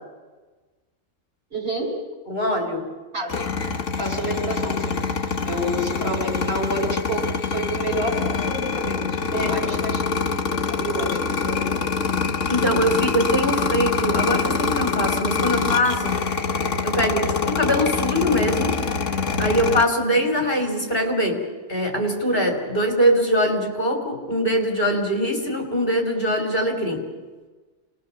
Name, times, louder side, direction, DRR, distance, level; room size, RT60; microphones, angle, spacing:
voice 1, 1.5-2.0 3.1-3.6 4.0-10.1 10.5-11.9, right 1 dB, 60° right, 1 dB, 4.9 m, -29 dB
voice 2, 2.3-2.9 9.3-9.5 12.5-16.2 16.8-18.8 19.4-21.4 21.7-27.0, equal, 45° left, 3 dB, 3.7 m, -22 dB
sound 1, 3.3-19.8, left 5 dB, 75° left, 1.7 m, -25 dB
27.0 x 20.0 x 7.0 m, 1.3 s
omnidirectional pair, 1.3 m